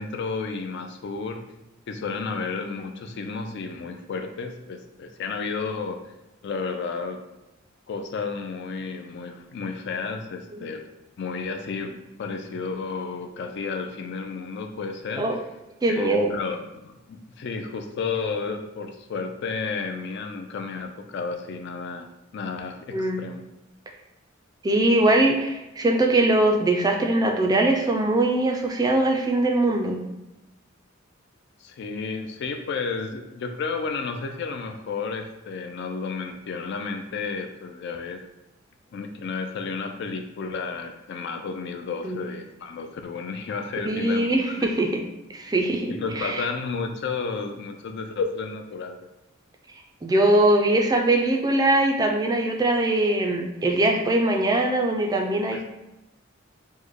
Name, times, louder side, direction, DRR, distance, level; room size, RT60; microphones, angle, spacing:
voice 1, 0.0-1.4 1.9-6.1 6.4-7.2 7.9-10.8 11.2-15.3 15.9-23.4 31.6-38.2 38.9-44.7 45.9-49.1 55.5-55.6, left 4 dB, 60° left, 5 dB, 0.4 m, -32 dB
voice 2, 15.8-16.4 22.9-23.2 24.6-30.0 42.0-42.2 43.9-45.0 45.3-46.4 50.0-55.6, right 2 dB, 20° right, 2 dB, 0.3 m, -22 dB
3.1 x 2.1 x 3.6 m, 0.97 s
head